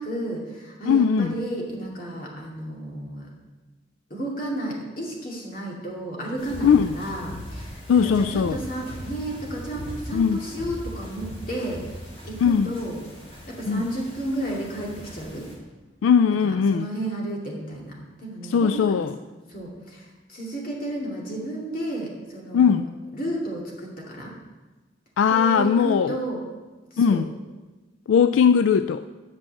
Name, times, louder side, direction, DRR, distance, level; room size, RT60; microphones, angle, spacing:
voice 1, 0.0-3.3 4.1-12.0 12.2-13.0 13.5-15.5 16.4-19.1 19.5-24.4 25.3-26.4 26.9-27.2, right 1 dB, 45° left, -3 dB, 2.3 m, -32 dB
voice 2, 0.9-1.3 6.6-6.9 7.9-8.6 10.1-10.5 12.4-12.7 13.7-13.8 16.0-16.9 18.5-19.1 22.5-22.9 25.2-26.2 27.0-27.3 28.1-29.0, left 6 dB, 80° left, 11 dB, 0.3 m, -19 dB
sound 1, 6.4-15.6, equal, 30° left, 2.2 m, -39 dB
8.6 x 5.9 x 7.6 m, 1.2 s
head